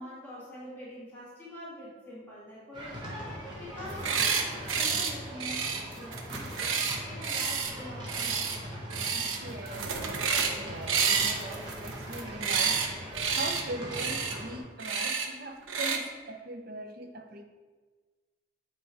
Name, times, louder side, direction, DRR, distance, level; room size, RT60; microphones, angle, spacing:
voice 1, 0.0-6.8 7.0-8.9, equal, 10° left, 2.1 m, -45 dB
sound 1, 2.7-14.6, equal, 25° right, 1.5 m, -41 dB
sound 2, 3.9-4.4 4.7-5.1 5.4-7.7 8.1-8.6 8.9-9.4 9.7-10.6 10.9-12.9 13.1-13.6 13.9-14.4 14.8-15.3 15.7-16.0, right 6 dB, 80° right, 0.9 m, -29 dB
voice 2, 9.1-17.4, right 2 dB, 45° right, 0.8 m, -41 dB
7.9 x 4.6 x 4.6 m
head